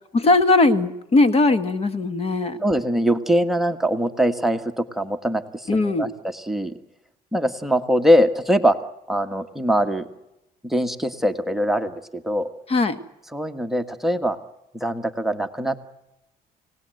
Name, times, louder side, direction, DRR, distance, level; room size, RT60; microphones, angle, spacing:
voice 1, 0.1-2.6 5.7-6.1 12.7-13.0, left 2 dB, 35° left, 12 dB, 1.7 m, -19 dB
voice 2, 2.6-6.8 7.3-8.8 9.1-10.1 10.6-12.5 13.3-14.4 14.7-15.8, equal, ahead, 11 dB, 1.5 m, -22 dB
29.5 x 18.5 x 7.9 m, 0.90 s
cardioid pair, 110°, 17 cm